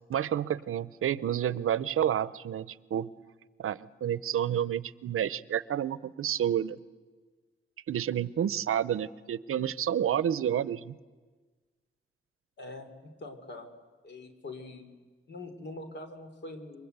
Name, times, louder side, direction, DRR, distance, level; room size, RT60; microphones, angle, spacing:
voice 1, 0.1-3.1 3.6-6.8 7.9-11.0, right 10 dB, 85° right, 18 dB, 0.7 m, -30 dB
voice 2, 12.6-13.7 14.0-14.9 15.3-16.9, left 2 dB, 55° left, 7 dB, 3.3 m, -43 dB
28.5 x 24.0 x 8.1 m, 1.4 s
wide cardioid pair, 170°, 21 cm